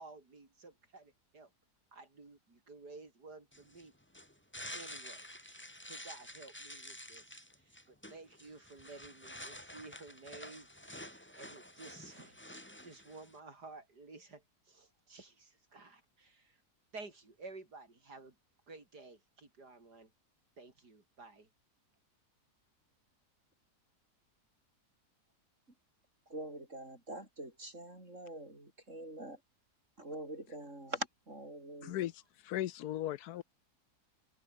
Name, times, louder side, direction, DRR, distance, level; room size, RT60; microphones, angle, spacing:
voice 1, 0.0-1.5 1.9-3.9 4.7-16.6 16.9-18.4 18.7-20.1 20.6-21.5, right 3 dB, 80° right, 4.7 m, -53 dB
sound 1, 3.5-13.4, left 1 dB, 5° left, 2.5 m, -50 dB
voice 2, 26.3-29.4 30.0-32.1, right 1 dB, 45° right, 6.6 m, -44 dB
voice 3, 31.8-32.1 32.4-33.4, left 13 dB, 75° left, 1.2 m, -37 dB
omnidirectional pair, 1.7 m